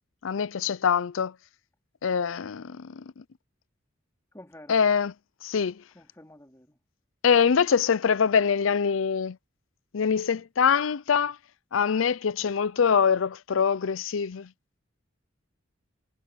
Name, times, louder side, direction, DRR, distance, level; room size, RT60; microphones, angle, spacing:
voice 1, 0.2-1.3 2.0-3.2 4.7-5.1 5.4-5.8 7.2-9.4 9.9-11.4 11.7-14.5, left 6 dB, 75° left, 0.5 m, -24 dB
voice 2, 4.3-4.9 5.9-6.8, left 1 dB, 15° left, 3.5 m, -50 dB
head